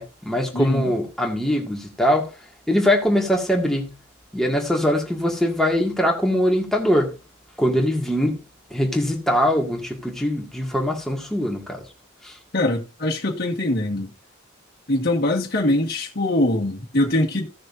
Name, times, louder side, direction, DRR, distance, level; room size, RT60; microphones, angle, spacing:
voice 1, 0.0-2.3 2.7-4.0 4.3-7.2 7.6-8.4 8.7-11.8 12.2-12.3, equal, ahead, 2.1 m, -22 dB
voice 2, 0.5-0.9 12.5-14.1 14.9-17.5, left 1 dB, 50° left, 1.7 m, -22 dB
16.5 x 6.5 x 2.7 m
head